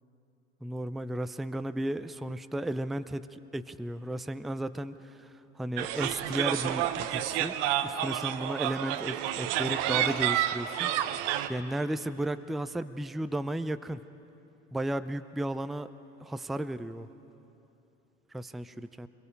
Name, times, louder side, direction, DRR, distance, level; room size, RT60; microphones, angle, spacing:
voice 1, 0.6-7.5 7.8-10.9 11.5-14.1 14.7-15.9 16.2-17.1 18.3-19.1, right 1 dB, ahead, 12 dB, 0.4 m, -34 dB
sound 1, 5.8-11.5, right 11 dB, 60° right, 1.0 m, -30 dB
24.5 x 22.0 x 5.2 m, 2.9 s
hypercardioid pair, 70°, 36 cm